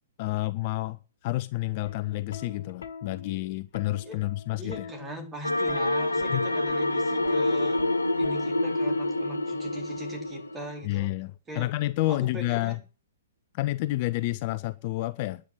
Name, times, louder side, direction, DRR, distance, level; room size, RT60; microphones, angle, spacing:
voice 1, 0.2-4.9 6.3-6.4 10.8-12.8 13.5-15.4, left 17 dB, 35° left, 0.6 m, -29 dB
Plucked string instrument, 1.9-8.9 10.0-10.3, left 6 dB, 55° left, 1.6 m, -45 dB
voice 2, 4.6-7.8 8.2-11.1 11.5-11.7 12.1-12.8, equal, 15° right, 4.3 m, -40 dB
sound 1, 5.4-10.8, left 1 dB, 80° left, 1.0 m, -27 dB
10.5 x 9.0 x 9.8 m
figure-of-eight pair, 115°, 0 cm